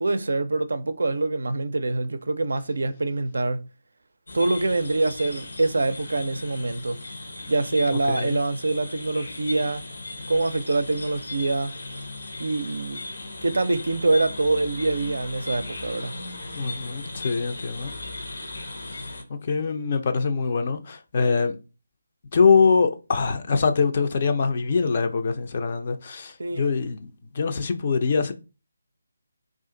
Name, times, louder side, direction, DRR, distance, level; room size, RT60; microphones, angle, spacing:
voice 1, 0.0-3.7 4.3-7.0 7.5-9.9 10.3-11.7 12.4-13.0 13.4-16.2 26.4-26.7, right 2 dB, 65° right, 0.4 m, -25 dB
sound 1, 4.3-19.2, left 2 dB, 70° left, 0.8 m, -37 dB
voice 2, 8.1-8.4 16.5-17.9 19.3-21.6 22.3-28.3, left 5 dB, 40° left, 0.5 m, -23 dB
2.4 x 2.4 x 3.7 m
figure-of-eight pair, 150°, 0 cm